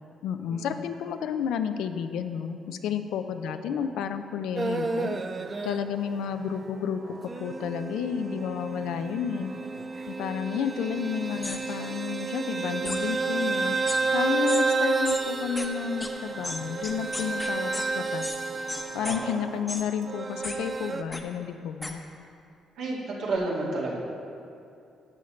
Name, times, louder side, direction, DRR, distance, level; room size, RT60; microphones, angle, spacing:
voice 1, 0.2-5.2 5.6-9.5 10.1-18.2 18.9-22.0, left 7 dB, 85° left, 9 dB, 0.4 m, -31 dB
voice 2, 3.4-3.7 10.6-10.7 19.0-19.4 22.8-24.0, right 2 dB, 85° right, -4 dB, 2.0 m, -32 dB
sound 1, 4.6-6.1 6.5-21.0, right 4 dB, 30° right, 0.4 m, -31 dB
sound 2, 11.4-11.6 12.8-13.0 13.9-14.0 14.5-14.6 15.0-15.2 15.6-15.7 16.0-16.1 16.4-17.9 18.2-18.4 18.7-19.2 19.7-19.8 20.4-20.6 21.1-21.2 21.8-21.9, left 2 dB, 15° left, 0.8 m, -34 dB
11.5 x 7.7 x 3.2 m, 2.5 s
cardioid pair, 90°, 0 cm